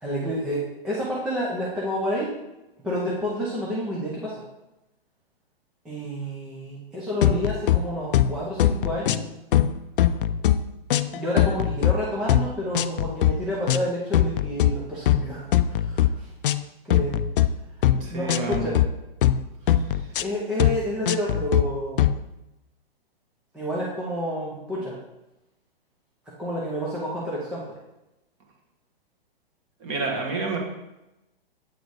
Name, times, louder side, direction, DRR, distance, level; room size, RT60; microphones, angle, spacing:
voice 1, 0.0-2.3 2.8-4.4 5.8-9.2 11.1-16.3 16.8-17.2 18.1-18.8 20.2-22.0 23.5-25.0 26.4-27.6, equal, 5° right, -7 dB, 0.3 m, -29 dB
sound 1, 7.2-7.8 8.1-8.3 8.6-9.3 9.5-10.6 10.9-11.9 12.3-12.5 12.7-13.3 13.7-13.9 14.1-14.7 15.1-15.2 15.5-16.1 16.4-16.6 16.9-17.5 17.8-18.0 18.3-18.9 19.2-19.4 19.7-20.2 20.6-20.8 21.1-21.6 22.0-22.2, left 12 dB, 60° left, 0.5 m, -20 dB
voice 2, 17.9-18.7 19.9-20.1 29.8-30.6, right 3 dB, 30° right, 0 dB, 1.7 m, -29 dB
8.1 x 4.0 x 4.6 m, 0.94 s
hypercardioid pair, 145°, 30 cm